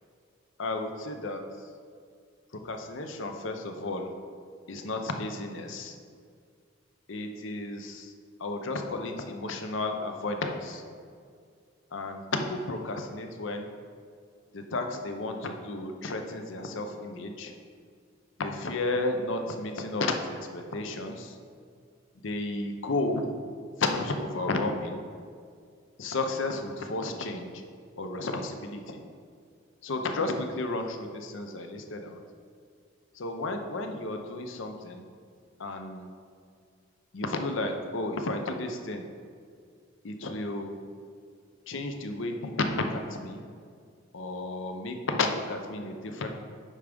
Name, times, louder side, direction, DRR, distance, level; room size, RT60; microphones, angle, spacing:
voice 1, 0.6-1.7 2.5-4.1 4.7-6.0 7.1-8.1 8.4-10.8 11.9-13.7 14.5-17.5 18.4-21.4 22.2-23.3 23.8-25.0 26.0-27.6 28.0-29.0 29.8-32.2 33.1-35.0 35.6-36.1 37.1-39.1 40.0-40.8 41.7-43.4 44.1-46.3, left 2 dB, 65° left, 5 dB, 0.6 m, -32 dB
8.5 x 3.5 x 5.2 m, 2.1 s
head